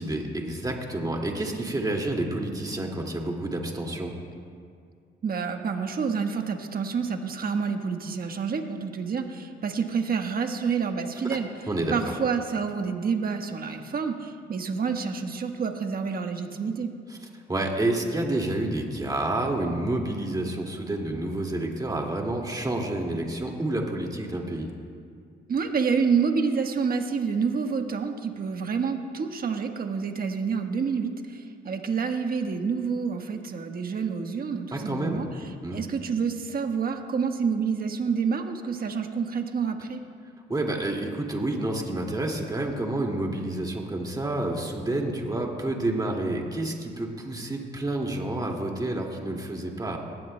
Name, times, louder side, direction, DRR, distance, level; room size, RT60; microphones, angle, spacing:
voice 1, 0.0-4.1 11.2-11.4 11.7-12.0 17.1-17.2 17.5-24.7 34.7-35.2 35.6-35.8 40.5-50.0, right 1 dB, 20° right, 1 dB, 2.1 m, -29 dB
voice 2, 5.2-11.5 11.9-16.9 25.5-35.3 35.7-40.0, right 5 dB, 50° right, 5 dB, 1.3 m, -28 dB
19.5 x 17.0 x 2.2 m, 2.2 s
cardioid pair, 90°, 20 cm